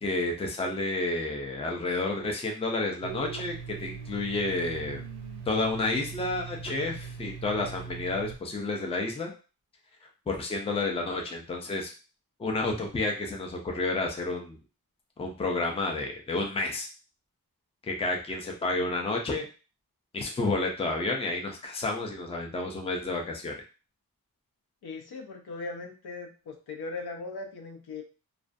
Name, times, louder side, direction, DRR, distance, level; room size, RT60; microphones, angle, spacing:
voice 1, 0.0-5.0 5.5-9.3 10.3-11.9 12.4-14.6 15.2-16.9 17.8-19.5 20.1-23.6, left 2 dB, 15° left, 1 dB, 0.4 m, -30 dB
Domestic sounds home sounds, 3.0-8.4, right 6 dB, 90° right, 0.5 m, -40 dB
voice 2, 24.8-28.0, left 3 dB, 85° left, 3 dB, 0.6 m, -39 dB
2.4 x 2.2 x 2.5 m, 0.35 s
wide cardioid pair, 160°, 37 cm